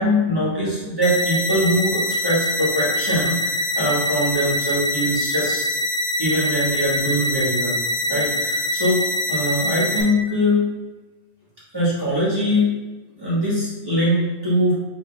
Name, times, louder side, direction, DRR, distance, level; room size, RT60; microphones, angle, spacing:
voice 1, 0.0-5.7 6.2-7.8 8.1-9.0 9.3-10.6 11.7-12.7 13.2-14.7, equal, 20° right, -8 dB, 1.5 m, -22 dB
sound 1, 1.0-10.0, left 1 dB, 65° left, 1.1 m, -24 dB
4.2 x 3.2 x 3.3 m, 1.2 s
omnidirectional pair, 1.2 m